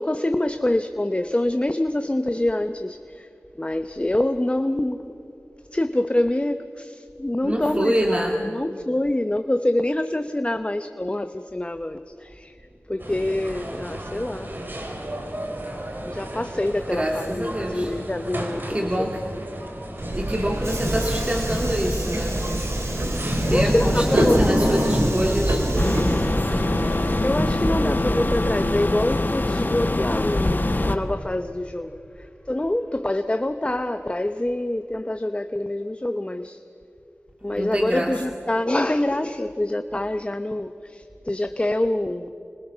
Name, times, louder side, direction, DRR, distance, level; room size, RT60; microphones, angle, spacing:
voice 1, 0.0-3.3 3.6-5.1 5.7-12.5 12.9-14.5 16.0-19.1 23.4-24.9 27.2-36.6 37.4-42.3, left 1 dB, 25° left, 9 dB, 0.8 m, -26 dB
voice 2, 7.4-8.4 16.9-17.9 18.7-19.3 20.1-22.4 23.5-25.6 26.3-26.8 37.6-38.2, equal, 25° right, 1 dB, 2.0 m, -26 dB
sound 1, 13.0-27.3, right 1 dB, 50° right, 3.6 m, -35 dB
Subway metro underground, 20.0-28.7, equal, 85° right, 3.6 m, -24 dB
sound 2, 25.8-31.0, left 2 dB, 45° left, 1.4 m, -24 dB
27.0 x 26.0 x 5.7 m, 2.9 s
wide cardioid pair, 60°, 4 cm